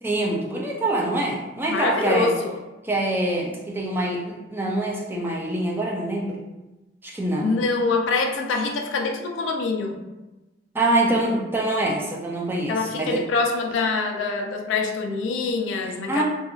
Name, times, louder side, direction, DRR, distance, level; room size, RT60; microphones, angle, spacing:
voice 1, 0.0-2.3 2.8-6.4 7.0-7.5 10.7-13.2 16.1-16.2, right 1 dB, 10° right, -2 dB, 0.3 m, -25 dB
voice 2, 1.7-2.6 7.4-10.0 12.7-16.2, left 3 dB, 80° left, 3 dB, 0.3 m, -25 dB
2.7 x 2.3 x 2.4 m, 1.1 s
head